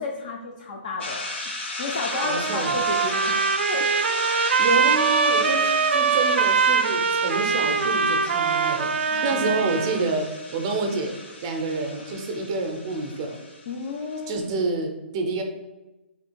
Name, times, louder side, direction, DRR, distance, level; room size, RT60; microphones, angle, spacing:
voice 1, 0.0-1.3 1.8-3.4 3.7-3.9 9.1-9.5 13.7-14.4, left 3 dB, 40° left, 0 dB, 0.4 m, -32 dB
sound 1, 1.0-14.3, left 2 dB, 85° left, 1.0 m, -35 dB
Trumpet, 2.1-10.0, right 5 dB, 80° right, 0.4 m, -23 dB
voice 2, 2.2-2.8 4.6-10.3 10.5-11.1 11.4-13.4 14.3-15.4, right 3 dB, 25° right, 4 dB, 0.5 m, -28 dB
3.5 x 2.7 x 4.4 m, 1.0 s
hypercardioid pair, 175°, 6 cm